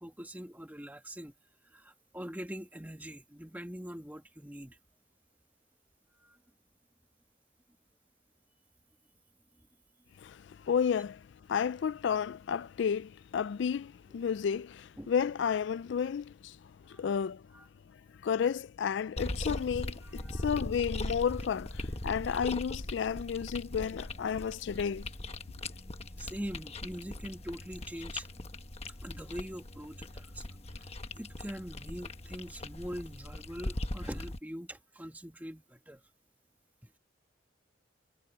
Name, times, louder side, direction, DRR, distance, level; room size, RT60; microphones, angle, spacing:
voice 1, 0.0-1.3 1.7-4.8 6.2-6.4 15.0-15.1 16.9-17.0 17.5-17.7 20.0-20.6 26.2-28.3 29.0-30.4 30.8-30.9 31.1-36.0, equal, 10° right, 1.5 m, -43 dB
voice 2, 10.2-17.4 18.2-25.1, left 7 dB, 65° left, 0.3 m, -32 dB
sound 1, 19.2-34.4, left 1 dB, 30° left, 1.2 m, -40 dB
head